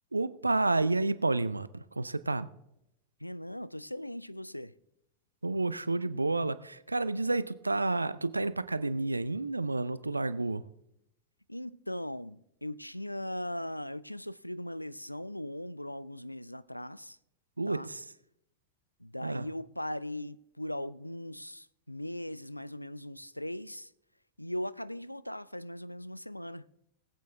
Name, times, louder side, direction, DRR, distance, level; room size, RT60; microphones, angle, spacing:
voice 1, 0.1-2.5 5.4-10.6 17.6-18.0 19.2-19.4, right 2 dB, 80° right, 0.5 m, -30 dB
voice 2, 3.2-4.7 11.5-17.2 17.7-17.9 19.0-23.9 24.4-26.7, left 1 dB, 90° left, 0.4 m, -39 dB
20.0 x 8.4 x 3.5 m
figure-of-eight pair, 90°, 0 cm